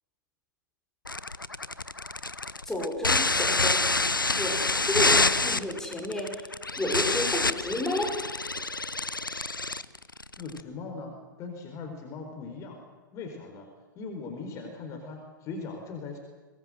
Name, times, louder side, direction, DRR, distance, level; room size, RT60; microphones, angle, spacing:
sound 1, 1.0-10.6, left 3 dB, 85° left, 0.8 m, -27 dB
voice 1, 2.7-3.8 4.4-6.5 6.8-8.1, left 1 dB, 5° left, 1 dB, 5.5 m, -31 dB
voice 2, 10.3-11.1 11.4-12.8 13.1-13.7 13.9-16.2, left 4 dB, 30° left, 4 dB, 4.4 m, -39 dB
23.5 x 20.0 x 7.9 m, 1.3 s
figure-of-eight pair, 105°, 11 cm